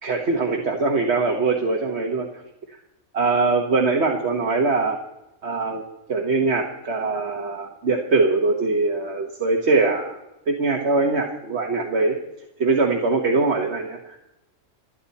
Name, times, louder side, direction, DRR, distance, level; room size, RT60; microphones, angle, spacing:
voice 1, 0.0-2.3 3.1-5.0 5.4-5.8 6.1-10.2 10.5-12.2 12.6-14.2, right 3 dB, 60° right, 1 dB, 1.6 m, -22 dB
29.0 x 9.9 x 4.2 m, 0.94 s
omnidirectional pair, 1.3 m